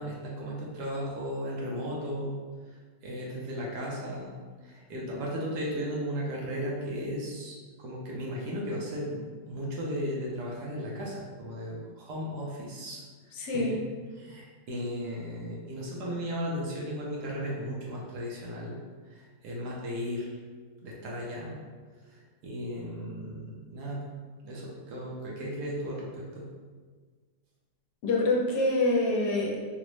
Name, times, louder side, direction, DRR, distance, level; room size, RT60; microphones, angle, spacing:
voice 1, 0.0-2.4 3.0-4.3 4.6-13.0 13.5-13.8 14.1-18.8 19.1-20.3 20.8-21.6 22.1-24.1 24.4-26.5, equal, 70° right, -4 dB, 1.2 m, -35 dB
voice 2, 13.3-13.8 28.0-29.6, left 2 dB, 75° left, -1 dB, 1.2 m, -26 dB
3.8 x 2.1 x 3.0 m, 1.5 s
omnidirectional pair, 1.9 m